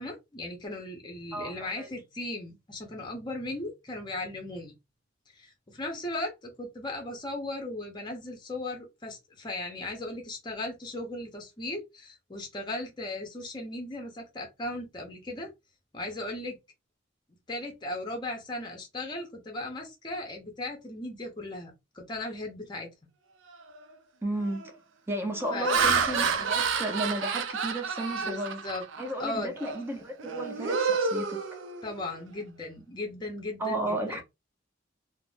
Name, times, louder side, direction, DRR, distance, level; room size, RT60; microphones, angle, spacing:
voice 1, 0.0-4.7 5.3-15.5 15.9-16.6 17.5-22.9 25.5-25.7 28.1-28.8 29.2-29.5 31.8-34.2, left 2 dB, 25° left, 0.6 m, -37 dB
voice 2, 1.3-1.9 24.2-24.7 25.1-28.6 29.0-31.4 33.6-34.2, right 1 dB, 10° right, 0.6 m, -33 dB
Laughter, 23.5-23.8 24.4-24.7 25.3-29.1 29.6-29.8 30.2-32.1, right 5 dB, 80° right, 0.5 m, -29 dB
2.5 x 2.0 x 3.3 m
head